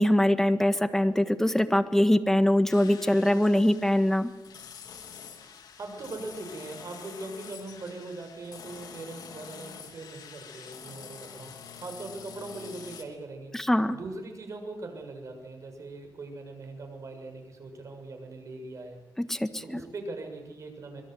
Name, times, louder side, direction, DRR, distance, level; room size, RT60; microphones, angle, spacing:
voice 1, 0.0-4.3 13.5-14.0 19.2-19.8, left 1 dB, 5° left, 8 dB, 1.7 m, -23 dB
sound 1, 2.7-13.0, left 7 dB, 85° left, 3.4 m, -46 dB
voice 2, 5.8-13.5 13.9-19.0 19.6-21.0, right 2 dB, 50° right, 5 dB, 6.8 m, -41 dB
25.5 x 22.5 x 8.0 m, 1.1 s
wide cardioid pair, 120°, 7 cm